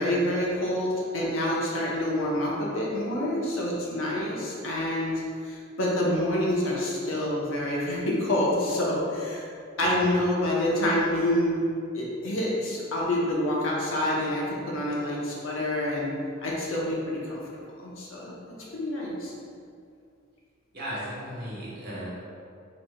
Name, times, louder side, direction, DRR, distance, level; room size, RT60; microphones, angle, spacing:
voice 1, 0.0-9.5 9.8-11.6 11.9-16.1 16.4-17.4 17.8-19.3, left 1 dB, 75° left, -5 dB, 1.0 m, -27 dB
voice 2, 9.8-10.1 20.7-22.1, equal, 50° right, -7 dB, 1.3 m, -36 dB
4.8 x 4.1 x 2.4 m, 2.4 s
head